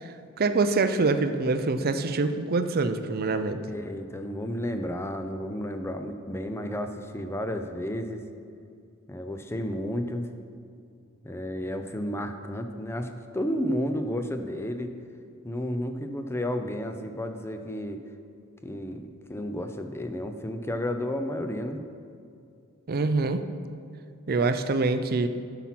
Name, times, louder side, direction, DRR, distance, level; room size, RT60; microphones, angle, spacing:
voice 1, 0.4-3.6 22.9-23.5 24.3-25.3, right 3 dB, 45° right, 9 dB, 0.5 m, -25 dB
voice 2, 3.7-8.2 9.1-10.3 11.2-14.9 15.4-18.0 18.6-21.8, equal, 10° left, 7 dB, 0.6 m, -32 dB
11.5 x 5.8 x 5.9 m, 2.4 s
head